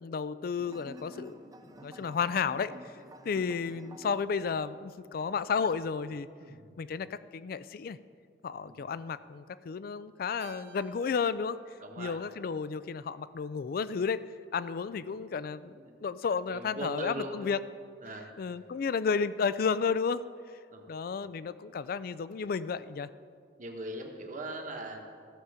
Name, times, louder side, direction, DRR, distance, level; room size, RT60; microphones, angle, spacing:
voice 1, 0.0-1.4 1.8-2.7 3.2-6.3 6.8-8.0 8.4-11.6 12.0-14.2 14.5-15.7 16.0-17.6 18.4-20.2 20.9-23.1, left 5 dB, 55° left, 16 dB, 0.4 m, -32 dB
sound 1, 0.6-4.2, right 1 dB, 20° right, 0.6 m, -50 dB
voice 2, 6.4-6.7 8.6-9.0 11.8-12.2 15.5-16.1 16.4-17.5 18.0-18.3 20.7-20.9 23.6-25.0, right 1 dB, 50° right, 2 dB, 1.3 m, -41 dB
Keyboard (musical), 10.4-12.9, right 1 dB, 85° right, 2.0 m, -54 dB
14.5 x 6.8 x 5.0 m, 2.2 s
head